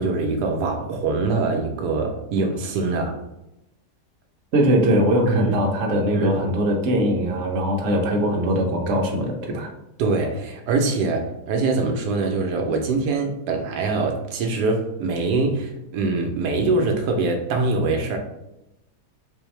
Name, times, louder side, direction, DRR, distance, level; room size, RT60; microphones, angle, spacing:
voice 1, 0.0-3.2 5.3-5.5 6.1-6.4 10.0-18.2, right 3 dB, 80° right, 3 dB, 1.2 m, -23 dB
voice 2, 4.5-9.7, equal, 55° right, 0 dB, 1.0 m, -21 dB
4.2 x 2.7 x 3.1 m, 0.89 s
omnidirectional pair, 1.7 m